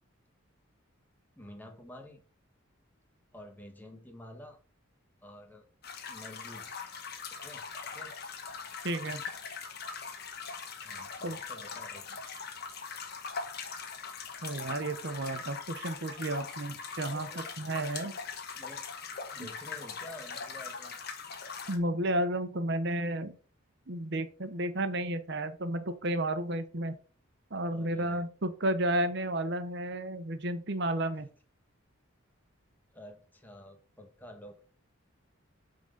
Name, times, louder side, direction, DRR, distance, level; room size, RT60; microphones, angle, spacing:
voice 1, 1.4-2.2 3.3-4.6 5.2-5.6 6.1-6.8 7.4-7.6 7.9-8.1 10.8-12.2 17.1-17.4 18.5-18.9 19.3-20.9 27.7-28.3 32.9-34.6, left 1 dB, 10° left, 3 dB, 1.3 m, -49 dB
sound 1, 5.8-21.8, left 5 dB, 50° left, 1.2 m, -41 dB
voice 2, 8.8-9.2 11.2-11.4 14.4-18.2 19.4-19.5 21.7-23.4 23.9-27.0 27.5-31.3, right 1 dB, 55° right, 10 dB, 0.9 m, -32 dB
8.6 x 3.9 x 5.4 m, 0.39 s
head